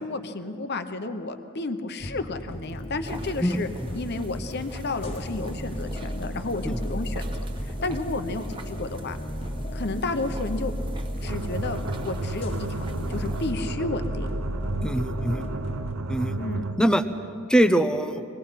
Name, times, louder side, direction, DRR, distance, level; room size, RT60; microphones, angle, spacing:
voice 1, 0.0-3.7 3.9-7.2 7.6-9.2 9.7-10.7 11.2-14.3 16.4-16.6, left 3 dB, 45° left, 8 dB, 0.9 m, -32 dB
sound 1, 2.0-15.9, equal, 25° left, 1.3 m, -34 dB
sound 2, 3.0-13.5, right 1 dB, 20° right, 1.2 m, -44 dB
sound 3, 11.3-16.9, right 2 dB, 65° right, 0.8 m, -33 dB
voice 2, 14.8-15.4 16.1-16.4 16.8-17.0 17.5-18.3, right 1 dB, 5° left, 10 dB, 0.6 m, -22 dB
25.0 x 19.5 x 5.7 m, 2.7 s
head